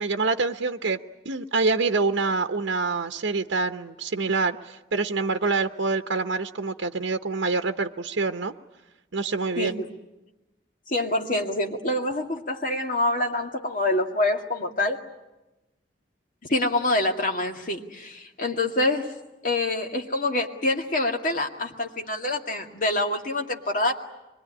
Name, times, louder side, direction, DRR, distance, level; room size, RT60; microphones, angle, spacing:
voice 1, 0.0-8.5 9.1-9.8, right 4 dB, 80° right, 7 dB, 0.9 m, -26 dB
voice 2, 9.6-9.9 10.9-15.0 16.5-19.1 19.4-24.0, left 2 dB, 45° left, 2 dB, 2.1 m, -26 dB
25.0 x 22.0 x 9.9 m, 1.0 s
head